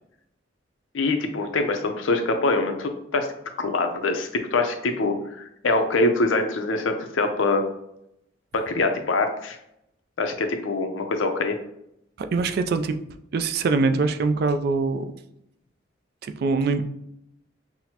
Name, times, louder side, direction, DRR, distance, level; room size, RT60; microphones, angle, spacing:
voice 1, 0.9-3.3 3.6-7.6 8.5-9.6 10.2-11.6, left 3 dB, 80° left, 6 dB, 0.6 m, -24 dB
voice 2, 12.2-13.0 13.3-15.1 16.2-16.8, right 4 dB, 55° right, 8 dB, 0.3 m, -23 dB
5.9 x 2.1 x 2.8 m, 0.79 s
head